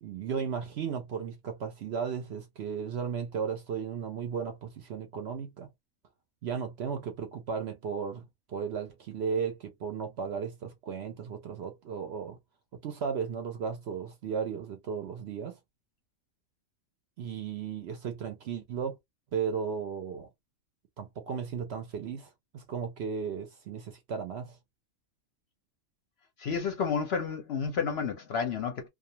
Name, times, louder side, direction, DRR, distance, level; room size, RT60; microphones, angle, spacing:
voice 1, 0.0-5.7 6.4-12.4 12.8-15.6 17.2-19.0 19.3-20.3 21.0-24.6, right 6 dB, 65° right, 0.7 m, -35 dB
voice 2, 26.4-28.9, left 6 dB, 60° left, 0.7 m, -31 dB
2.4 x 2.2 x 2.7 m
omnidirectional pair, 1.4 m